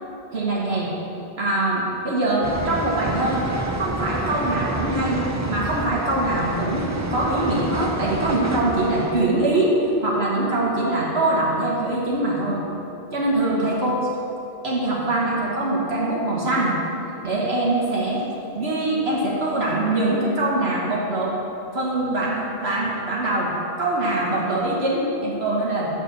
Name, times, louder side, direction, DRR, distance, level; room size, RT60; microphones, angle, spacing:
voice 1, 0.3-0.9 1.4-3.5 3.7-5.2 5.5-9.8 10.0-12.6 13.1-14.1 14.6-16.8 17.2-18.2 18.5-21.3 21.7-23.5 23.8-25.9, right 2 dB, 70° right, -5 dB, 1.5 m, -23 dB
sound 1, 2.4-9.3, right 2 dB, 25° right, 0.4 m, -29 dB
6.4 x 6.4 x 6.8 m, 3.0 s
omnidirectional pair, 1.1 m